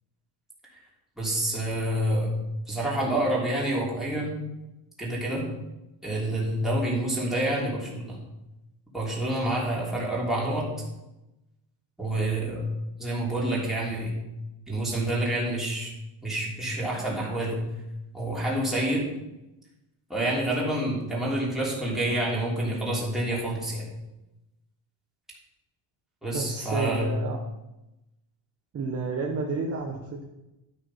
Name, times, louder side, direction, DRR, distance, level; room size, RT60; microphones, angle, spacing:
voice 1, 1.2-2.3 2.7-4.3 5.0-5.4 6.0-8.2 8.9-10.7 12.0-12.6 13.0-14.2 14.7-15.9 16.2-17.6 18.1-19.1 20.1-23.8 26.2-27.1, right 1 dB, ahead, -6 dB, 3.1 m, -28 dB
voice 2, 26.3-27.4 28.7-30.2, right 4 dB, 30° right, 0 dB, 1.1 m, -31 dB
12.0 x 6.3 x 5.6 m, 0.94 s
cardioid pair, 170°, 47 cm